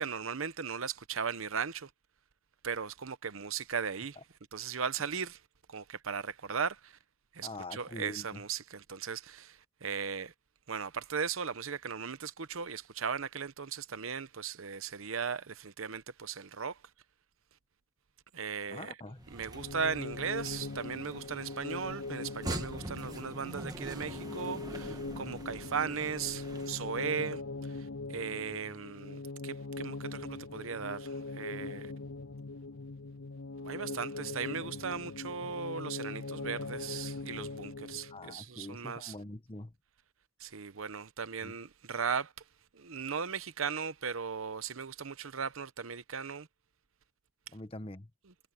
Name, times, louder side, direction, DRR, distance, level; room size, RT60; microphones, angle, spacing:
voice 1, 0.0-1.9 2.6-4.2 4.5-5.4 5.7-7.0 7.3-10.3 10.7-16.8 18.3-18.9 19.3-31.9 33.6-39.1 40.4-42.3 42.7-46.5, right 6 dB, 75° right, 0.9 m, -37 dB
voice 2, 7.4-8.4 18.7-19.2 38.1-39.7 41.4-41.5 47.5-48.1, left 2 dB, 25° left, 1.2 m, -44 dB
sound 1, 19.2-27.0, right 1 dB, 20° right, 1.4 m, -44 dB
sound 2, 19.5-38.3, left 3 dB, 80° left, 0.6 m, -41 dB
head